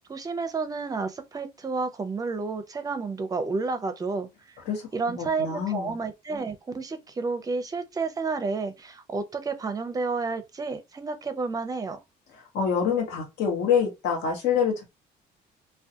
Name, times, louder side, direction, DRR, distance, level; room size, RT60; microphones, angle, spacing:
voice 1, 0.1-4.3 4.9-12.0, right 4 dB, 20° right, 0.5 m, -30 dB
voice 2, 5.2-5.9 12.5-14.8, left 7 dB, 80° left, 1.0 m, -26 dB
2.3 x 2.2 x 2.7 m
cardioid pair, 110°, 17 cm